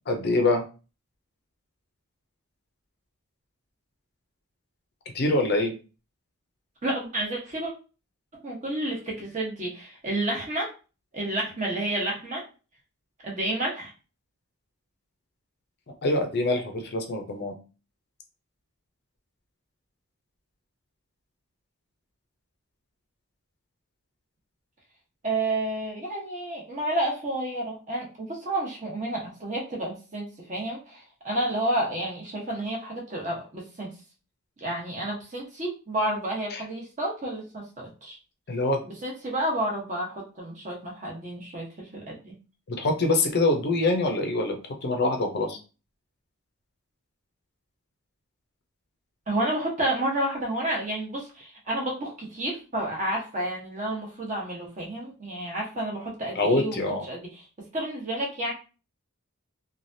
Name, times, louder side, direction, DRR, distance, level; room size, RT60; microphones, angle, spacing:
voice 1, 0.1-0.6 5.1-5.7 16.0-17.5 36.5-36.6 38.5-38.8 42.7-45.6 56.3-57.0, left 2 dB, 50° left, 4 dB, 0.5 m, -25 dB
voice 2, 6.8-7.7 8.4-10.7 11.1-12.4 13.2-13.9 25.2-33.9 34.6-38.2 38.8-42.3 49.3-56.8 57.1-57.3 57.7-58.5, right 1 dB, 35° right, -2 dB, 1.0 m, -30 dB
3.1 x 2.3 x 2.6 m, 0.33 s
head